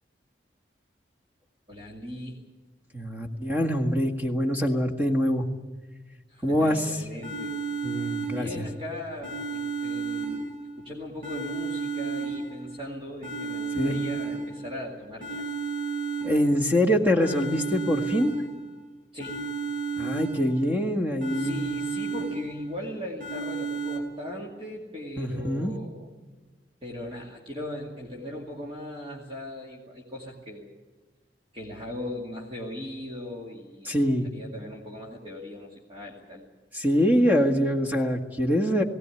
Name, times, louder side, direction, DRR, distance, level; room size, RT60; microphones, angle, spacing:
voice 1, 1.7-2.4 6.3-7.6 8.3-10.4 10.8-15.5 19.1-19.5 21.3-26.1 26.8-30.7 31.5-34.0 34.3-36.4, left 1 dB, 30° right, -2 dB, 2.3 m, -38 dB
voice 2, 2.9-5.5 6.4-7.0 7.8-8.7 13.7-14.0 16.2-18.3 20.0-21.6 25.2-25.8 33.9-34.3 36.7-38.8, equal, 10° right, 3 dB, 1.8 m, -24 dB
sound 1, 7.2-8.8 9.2-10.8 11.2-12.8 13.2-14.8 15.2-16.8 17.2-18.8 19.2-20.8 21.2-22.8 23.2-24.0, right 5 dB, 50° right, 3.7 m, -32 dB
19.0 x 17.5 x 9.9 m, 1.3 s
head